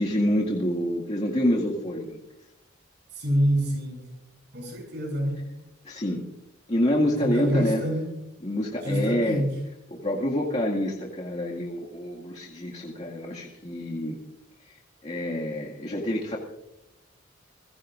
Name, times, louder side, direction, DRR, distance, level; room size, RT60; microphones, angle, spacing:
voice 1, 0.0-2.2 5.8-6.2 6.7-7.8 8.4-9.5 10.0-14.2 14.7-14.8 15.0-16.4, left 1 dB, 35° left, -4 dB, 2.1 m, -27 dB
voice 2, 3.1-4.1 4.5-5.4 7.0-8.1 8.8-9.6, equal, 55° right, -1 dB, 7.7 m, -26 dB
30.0 x 16.0 x 2.6 m, 0.88 s
head